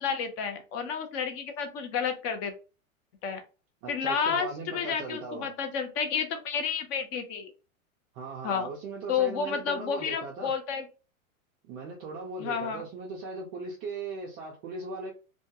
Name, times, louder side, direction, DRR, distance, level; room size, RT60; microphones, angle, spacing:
voice 1, 0.0-2.5 3.2-3.4 3.9-7.5 8.4-8.7 9.1-10.9 12.4-12.8, left 6 dB, 35° left, 7 dB, 0.5 m, -30 dB
voice 2, 3.8-5.5 8.1-10.5 11.6-15.1, right 3 dB, 30° right, -2 dB, 0.3 m, -38 dB
2.3 x 2.1 x 2.7 m, 0.33 s
hypercardioid pair, 130°, 42 cm